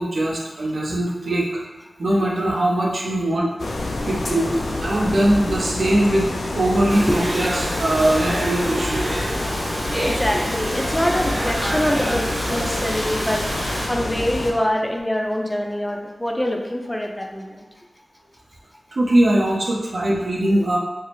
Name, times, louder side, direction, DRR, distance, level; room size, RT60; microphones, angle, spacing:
voice 1, 0.0-1.6 2.0-3.5 4.0-9.1 18.9-20.8, right 1 dB, 75° right, -3 dB, 0.7 m, -21 dB
sound 1, 3.6-14.5, left 2 dB, 85° left, 0.4 m, -27 dB
Domestic sounds home sounds, 6.9-13.9, right 1 dB, 40° right, 0.6 m, -28 dB
voice 2, 10.0-17.5, equal, 15° left, 1 dB, 0.4 m, -24 dB
4.6 x 2.0 x 3.0 m, 1.1 s
wide cardioid pair, 90°, 0 cm